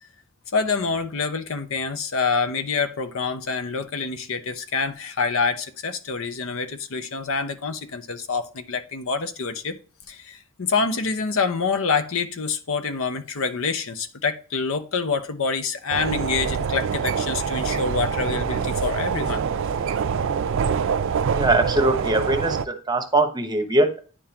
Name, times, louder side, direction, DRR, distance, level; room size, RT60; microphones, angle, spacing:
voice 1, 0.5-9.8 10.1-19.4, left 4 dB, 65° left, 0.8 m, -26 dB
sound 1, 15.9-22.6, right 6 dB, 60° right, 0.4 m, -25 dB
voice 2, 21.3-24.0, right 2 dB, 20° right, 0.9 m, -21 dB
9.9 x 3.7 x 2.9 m
head